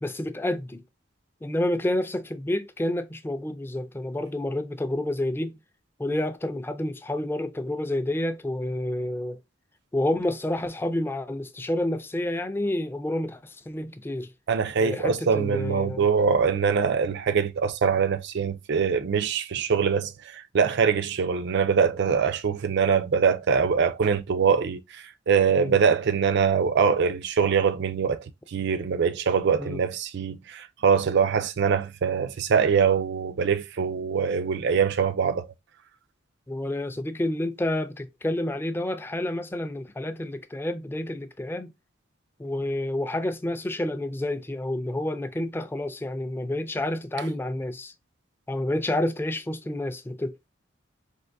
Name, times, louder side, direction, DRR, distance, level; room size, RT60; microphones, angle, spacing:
voice 1, 0.0-0.8 1.4-5.6 6.0-9.4 9.9-14.3 14.8-16.1 25.6-25.7 29.6-29.8 36.5-41.7 42.4-47.9 48.5-50.5, left 1 dB, 10° left, 0.4 m, -29 dB
voice 2, 14.5-28.2 28.5-35.5, right 6 dB, 60° right, 0.4 m, -23 dB
3.5 x 2.5 x 2.5 m
head